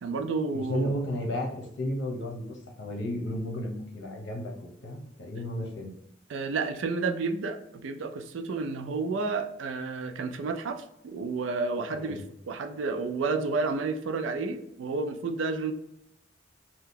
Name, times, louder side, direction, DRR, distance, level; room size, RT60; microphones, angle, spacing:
voice 1, 0.0-0.9 6.3-15.7, right 4 dB, 70° right, 7 dB, 0.4 m, -31 dB
voice 2, 0.5-4.5 4.8-6.0 11.9-12.2, left 1 dB, 65° left, 0 dB, 0.8 m, -33 dB
2.8 x 2.2 x 3.6 m, 0.80 s
head